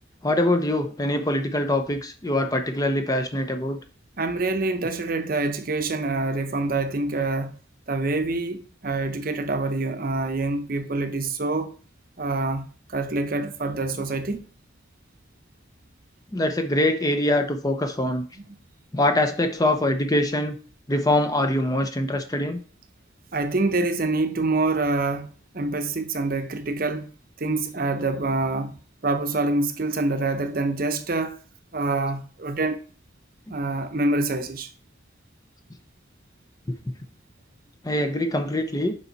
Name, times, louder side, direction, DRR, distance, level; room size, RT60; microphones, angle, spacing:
voice 1, 0.2-3.8 16.3-18.3 18.9-20.6 20.9-22.6 36.7-36.8 37.8-38.9, left 1 dB, 20° left, 0.6 m, -23 dB
voice 2, 4.2-7.5 7.9-11.7 12.2-14.4 23.3-25.3 25.5-27.1 27.4-28.8 29.0-31.4 31.7-32.8 33.5-34.7, right 2 dB, 45° right, 0.8 m, -26 dB
7.1 x 5.3 x 4.0 m
head